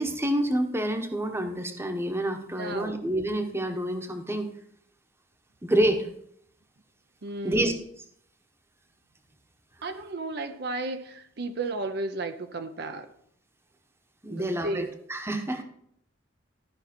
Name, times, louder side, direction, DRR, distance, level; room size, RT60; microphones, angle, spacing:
voice 1, 0.0-4.5 5.6-6.1 7.4-7.7 14.2-15.6, right 1 dB, 15° right, 6 dB, 1.0 m, -28 dB
voice 2, 2.6-3.0 7.2-7.8 9.8-13.1 14.3-14.9, right 2 dB, 60° right, 7 dB, 0.6 m, -33 dB
13.5 x 5.5 x 4.3 m, 0.69 s
head